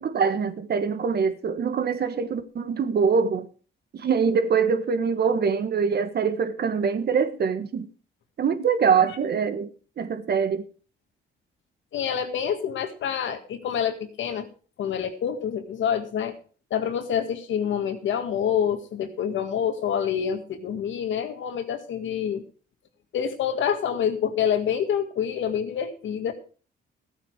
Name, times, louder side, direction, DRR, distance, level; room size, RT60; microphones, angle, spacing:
voice 1, 0.0-3.5 3.9-7.9 8.4-9.7 10.0-10.6, right 6 dB, 55° right, 1.5 m, -24 dB
voice 2, 11.9-14.5 14.8-16.3 16.7-22.4 23.1-26.3, left 8 dB, 75° left, 1.9 m, -27 dB
14.5 x 9.3 x 4.7 m
cardioid pair, 90°, 20 cm